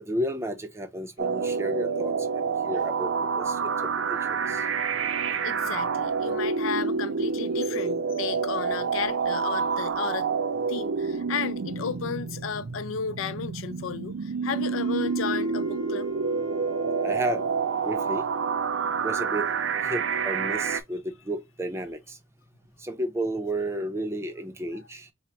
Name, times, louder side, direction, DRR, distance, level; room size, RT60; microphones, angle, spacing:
voice 1, 0.0-3.7 4.1-4.6 17.0-17.4 17.8-18.3 19.0-19.5 19.8-22.2 22.8-25.1, right 1 dB, 15° right, 0.6 m, -32 dB
sound 1, 1.2-20.8, right 5 dB, 70° right, 0.4 m, -28 dB
voice 2, 5.4-10.3 10.7-16.1, left 6 dB, 85° left, 0.4 m, -33 dB
Wind instrument woodwind instrument, 14.5-18.8, right 2 dB, 15° left, 1.0 m, -44 dB
3.9 x 2.1 x 4.4 m
head